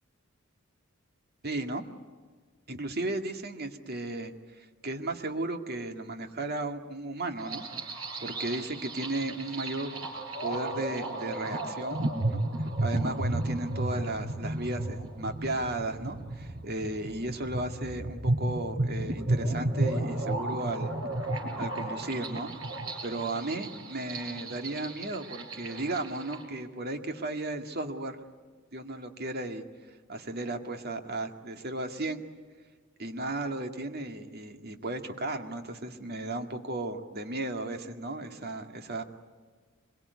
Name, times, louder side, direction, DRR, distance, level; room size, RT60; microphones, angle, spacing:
voice 1, 1.4-1.8 2.7-20.9 21.6-22.5 23.0-28.2 28.7-32.2 33.0-39.0, right 2 dB, 50° right, 5 dB, 2.1 m, -35 dB
sound 1, 7.4-26.4, right 2 dB, 85° right, 5.0 m, -33 dB
25.5 x 23.0 x 9.5 m, 1.5 s
head